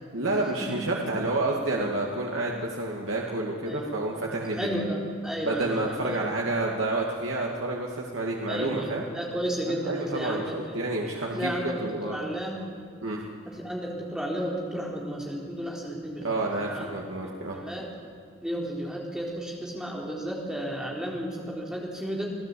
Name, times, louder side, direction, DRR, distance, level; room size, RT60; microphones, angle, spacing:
voice 1, 0.1-4.7 5.5-9.0 9.9-12.2 13.0-13.2 16.2-17.6, right 2 dB, 75° right, -1 dB, 2.3 m, -29 dB
voice 2, 3.7-4.0 4.6-6.2 8.5-10.8 11.3-12.6 13.4-16.9 17.2-17.9 18.4-22.3, equal, 5° right, -3 dB, 4.1 m, -33 dB
28.5 x 16.5 x 8.6 m, 2.2 s
head